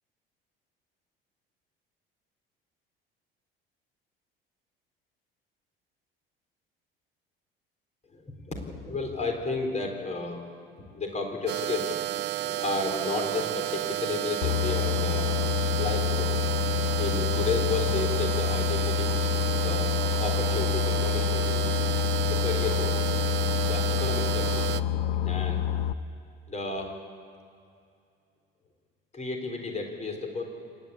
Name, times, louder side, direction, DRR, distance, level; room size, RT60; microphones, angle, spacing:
voice 1, 8.1-10.4 10.9-12.0 12.6-15.3 15.8-16.4 17.0-19.2 19.6-19.9 20.2-21.7 22.3-23.0 23.6-24.7 25.2-25.6 26.5-26.9 29.1-30.4, left 3 dB, 25° left, 3 dB, 3.9 m, -32 dB
sound 1, 11.5-24.8, right 14 dB, 35° right, 0.7 m, -31 dB
Boat Water vehicle, 14.4-25.9, left 10 dB, 70° left, 0.6 m, -27 dB
27.0 x 11.0 x 8.6 m, 2.4 s
figure-of-eight pair, 60°, 29 cm